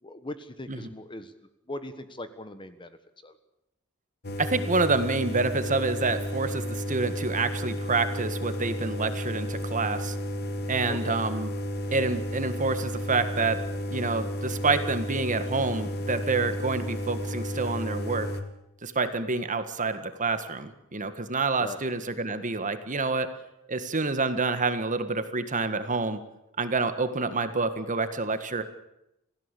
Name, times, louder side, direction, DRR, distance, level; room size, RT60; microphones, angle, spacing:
voice 1, 0.0-1.3 1.7-3.0 3.2-3.4 10.9-11.2 21.6-21.8, left 2 dB, 25° left, 11 dB, 1.4 m, -39 dB
sound 1, 4.2-18.4, equal, 50° left, 2.1 m, -32 dB
voice 2, 4.4-10.1 10.7-11.5 11.9-13.6 13.9-18.3 18.8-23.3 23.7-26.2 26.6-28.6, right 3 dB, 35° right, 10 dB, 1.7 m, -28 dB
27.5 x 17.0 x 8.4 m, 0.88 s
head